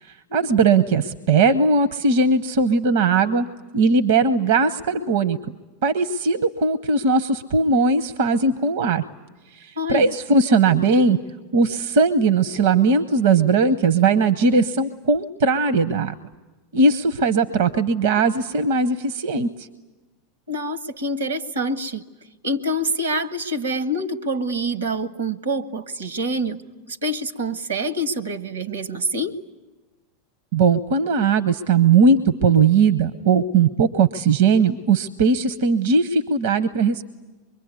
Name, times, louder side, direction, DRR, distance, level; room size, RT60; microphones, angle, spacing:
voice 1, 0.0-3.5 3.7-5.5 5.8-9.0 9.5-11.2 11.5-16.1 16.7-19.7 30.5-37.0, right 4 dB, 70° right, 14 dB, 0.8 m, -19 dB
voice 2, 9.8-10.1 20.5-22.0 22.4-26.6 26.9-29.4, right 1 dB, 85° right, 13 dB, 1.3 m, -26 dB
25.0 x 23.0 x 9.6 m, 1.2 s
hypercardioid pair, 90°, 0 cm